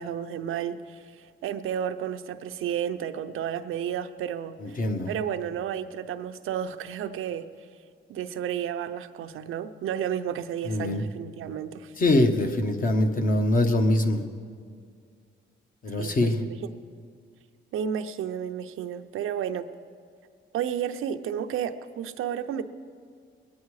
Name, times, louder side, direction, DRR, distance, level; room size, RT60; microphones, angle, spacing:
voice 1, 0.0-7.5 8.1-11.9 16.0-16.6 17.7-19.7 20.5-22.6, right 9 dB, 85° right, 8 dB, 0.7 m, -32 dB
voice 2, 4.6-5.1 10.7-11.0 12.0-14.2 15.8-16.4, left 1 dB, 40° left, 5 dB, 1.2 m, -23 dB
21.5 x 9.4 x 4.8 m, 2.1 s
cardioid pair, 120°, 21 cm